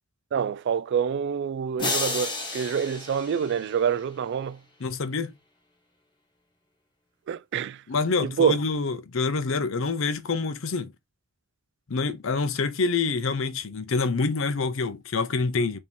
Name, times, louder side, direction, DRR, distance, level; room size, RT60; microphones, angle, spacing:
voice 1, 0.3-4.6 7.3-7.8 8.2-8.6, right 7 dB, 55° right, 0.3 m, -26 dB
sound 1, 1.8-4.1, left 3 dB, 20° left, 1.0 m, -32 dB
voice 2, 4.8-5.3 7.9-10.9 11.9-15.8, left 4 dB, 65° left, 0.6 m, -26 dB
5.0 x 2.8 x 3.3 m
head